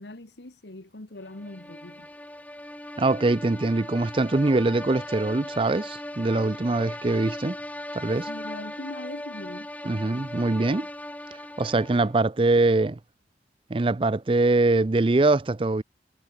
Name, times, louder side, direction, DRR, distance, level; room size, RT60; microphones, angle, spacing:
voice 1, 0.0-2.1 8.3-9.7, left 2 dB, 75° left, 1.7 m, -41 dB
sound 1, 1.3-12.3, left 1 dB, 10° left, 2.2 m, -38 dB
voice 2, 3.0-7.6 7.9-8.3 9.8-10.9 11.6-13.0 13.7-15.8, right 2 dB, 30° right, 0.5 m, -23 dB
head